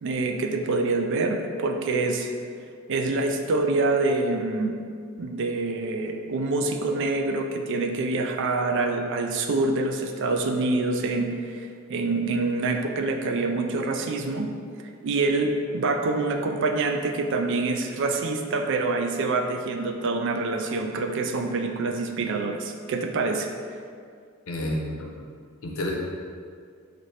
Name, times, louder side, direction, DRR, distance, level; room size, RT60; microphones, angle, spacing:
voice 1, 0.0-2.3 2.9-4.8 5.2-14.5 14.8-23.5, right 3 dB, 60° right, 4 dB, 0.4 m, -26 dB
voice 2, 24.5-25.1 25.6-25.9, left 1 dB, 80° left, -1 dB, 0.6 m, -29 dB
4.2 x 2.6 x 3.2 m, 2.2 s
head